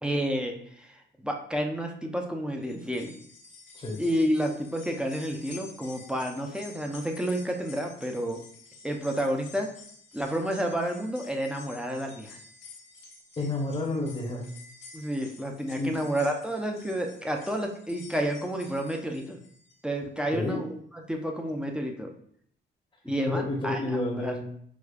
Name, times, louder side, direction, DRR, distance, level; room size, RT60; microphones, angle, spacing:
voice 1, 0.0-3.1 4.0-8.4 8.8-9.7 10.1-12.4 14.9-19.4 19.8-20.8 21.1-22.1 23.0-24.3, equal, 5° right, 2 dB, 0.5 m, -30 dB
sound 1, 2.6-19.9 20.3-20.4 21.5-21.6, left 4 dB, 65° left, 1.1 m, -50 dB
voice 2, 13.4-14.5 15.8-15.9 20.3-20.6 23.3-24.4, left 2 dB, 25° left, -1 dB, 0.8 m, -30 dB
4.7 x 2.3 x 2.4 m, 0.64 s
cardioid pair, 90°, 20 cm